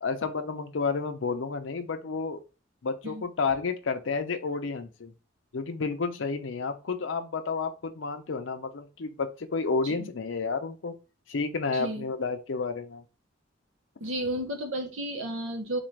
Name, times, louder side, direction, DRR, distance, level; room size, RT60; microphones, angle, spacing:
voice 1, 0.0-2.4 2.8-5.1 5.5-10.9 11.3-13.0, left 4 dB, 70° left, 7 dB, 0.6 m, -31 dB
voice 2, 11.7-12.1 14.0-15.8, right 1 dB, 90° right, 4 dB, 0.8 m, -33 dB
3.8 x 2.5 x 3.2 m, 0.31 s
head